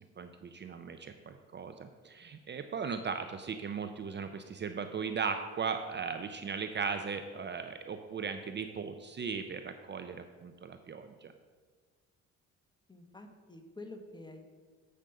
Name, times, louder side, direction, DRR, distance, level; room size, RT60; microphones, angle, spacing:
voice 1, 0.0-11.3, right 5 dB, 35° right, 8 dB, 0.5 m, -38 dB
voice 2, 12.9-14.5, left 2 dB, 15° left, 5 dB, 1.1 m, -48 dB
7.6 x 5.1 x 6.6 m, 1.5 s
cardioid pair, 90°, 30 cm